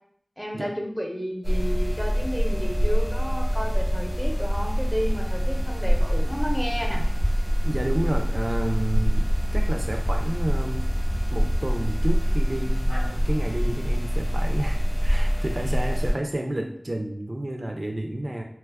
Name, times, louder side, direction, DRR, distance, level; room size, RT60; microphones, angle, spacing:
voice 1, 0.4-7.0, equal, ahead, 1 dB, 0.6 m, -31 dB
sound 1, 1.4-16.1, equal, 80° left, 1.2 m, -24 dB
voice 2, 7.6-10.9 11.3-18.4, right 1 dB, 50° right, 2 dB, 0.3 m, -30 dB
2.8 x 2.2 x 3.4 m, 0.67 s
wide cardioid pair, 50°, 0 cm